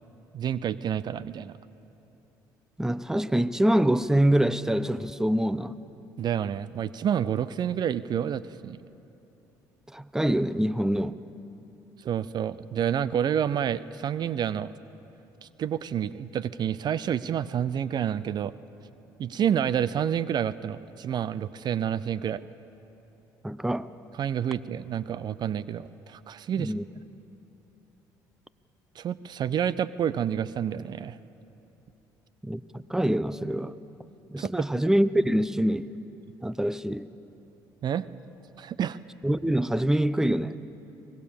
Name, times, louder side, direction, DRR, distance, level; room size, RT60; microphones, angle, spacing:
voice 1, 0.3-1.6 6.2-8.8 12.0-14.7 15.4-18.5 19.2-22.4 24.2-26.7 29.0-31.2 34.4-34.5 37.8-38.1 38.6-39.0, right 9 dB, 55° right, 0.6 m, -29 dB
voice 2, 2.8-5.8 9.9-11.2 23.4-23.9 26.6-26.8 32.4-33.7 34.3-35.9 36.4-37.1 39.2-40.6, right 1 dB, 5° right, 0.7 m, -25 dB
24.5 x 19.5 x 7.2 m
supercardioid pair, 65°, 9 cm